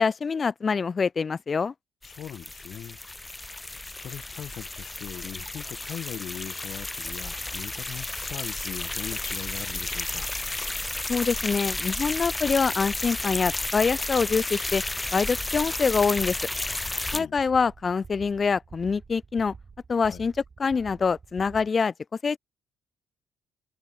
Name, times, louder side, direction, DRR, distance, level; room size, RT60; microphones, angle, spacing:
voice 1, 0.0-1.7 11.1-14.8 15.1-16.3 17.1-19.5 19.9-20.3 20.6-21.9 22.2-22.4, left 5 dB, 40° left, 0.9 m, -25 dB
voice 2, 2.0-3.5 3.8-10.3 17.0-17.4 20.1-20.2, left 9 dB, 65° left, 1.6 m, -40 dB
sound 1, 2.0-17.2, left 2 dB, 15° left, 2.6 m, -32 dB
sound 2, 14.1-21.7, right 5 dB, 40° right, 7.8 m, -48 dB
supercardioid pair, 70°, 0 cm